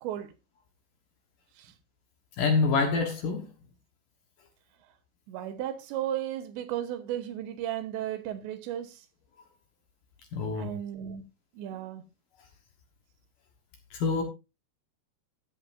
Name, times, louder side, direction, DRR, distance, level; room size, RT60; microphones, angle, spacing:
voice 1, 0.0-0.3 1.6-1.7 5.3-9.0 10.5-11.2 11.6-12.0, right 11 dB, 80° right, 3.3 m, -34 dB
voice 2, 2.4-3.5 10.3-10.8 13.9-14.2, left 4 dB, 65° left, 2.4 m, -26 dB
13.5 x 9.5 x 2.6 m
omnidirectional pair, 5.1 m